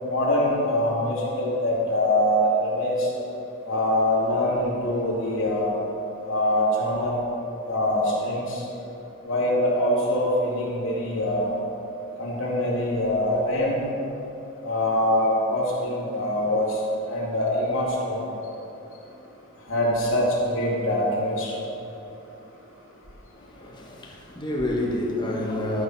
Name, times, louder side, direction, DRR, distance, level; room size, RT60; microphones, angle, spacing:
voice 1, 0.0-3.1 3.6-5.7 6.2-7.1 7.7-8.6 9.2-11.5 12.2-13.8 14.6-16.8 17.1-18.2 19.7-21.6, left 1 dB, 75° left, 2.7 m, -24 dB
voice 2, 23.5-25.8, left 1 dB, 20° left, 1.3 m, -28 dB
12.0 x 5.9 x 6.0 m
head